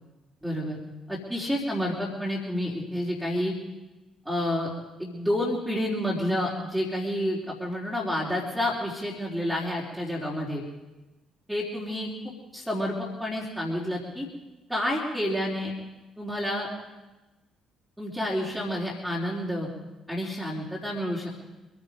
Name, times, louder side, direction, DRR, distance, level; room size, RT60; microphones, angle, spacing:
voice 1, 0.4-0.8 1.1-3.6 4.2-4.7 5.0-10.6 11.5-12.1 12.5-14.3 14.7-15.7 16.2-16.7 18.0-19.7 20.1-21.3, left 1 dB, 5° right, -5 dB, 4.0 m, -29 dB
25.5 x 10.0 x 5.3 m, 1.1 s
figure-of-eight pair, 45°, 0 cm